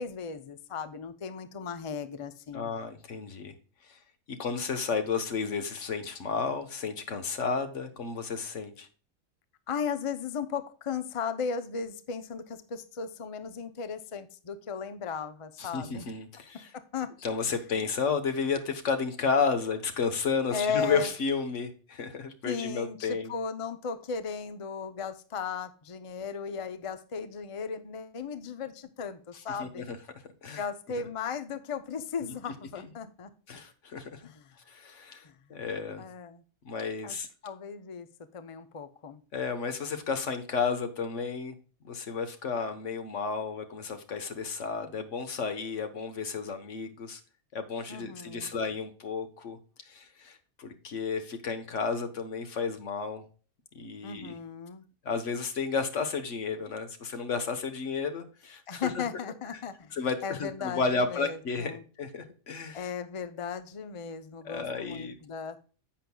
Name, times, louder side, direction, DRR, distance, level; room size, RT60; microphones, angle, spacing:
voice 1, 0.0-2.7 9.7-16.1 16.7-17.1 20.5-21.1 22.4-29.9 30.6-33.3 34.2-34.5 35.2-35.6 36.0-36.4 37.0-37.2 37.4-38.1 38.3-39.2 47.9-48.5 54.0-54.8 58.7-60.0 60.2-61.8 62.7-65.6, left 6 dB, 35° left, 10 dB, 0.6 m, -36 dB
voice 2, 2.5-3.5 3.9-4.0 4.3-8.9 15.6-16.7 17.2-23.3 29.6-30.0 30.4-30.6 31.0-31.1 32.8-32.9 33.5-34.2 34.7-35.2 35.5-36.0 36.6-37.3 39.3-41.5 41.8-47.2 47.5-49.6 49.9-53.2 53.7-54.4 55.0-59.0 59.5-59.6 59.9-62.9 64.4-65.2, left 5 dB, 75° left, 8 dB, 1.5 m, -32 dB
10.5 x 7.6 x 2.3 m, 0.38 s
omnidirectional pair, 1.3 m